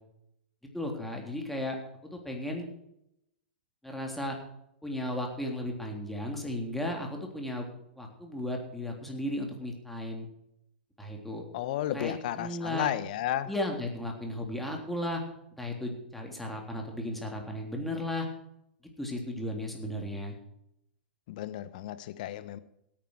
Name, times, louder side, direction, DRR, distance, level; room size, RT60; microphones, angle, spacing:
voice 1, 0.7-2.7 3.8-4.4 4.8-7.7 8.0-10.3 11.0-11.4 11.9-12.9 13.5-15.2 15.6-18.3 19.0-20.4, left 1 dB, 5° left, 1 dB, 3.5 m, -35 dB
voice 2, 11.5-13.5 21.3-22.6, left 12 dB, 55° left, 14 dB, 1.1 m, -33 dB
17.0 x 9.2 x 4.7 m, 0.80 s
figure-of-eight pair, 105°, 5 cm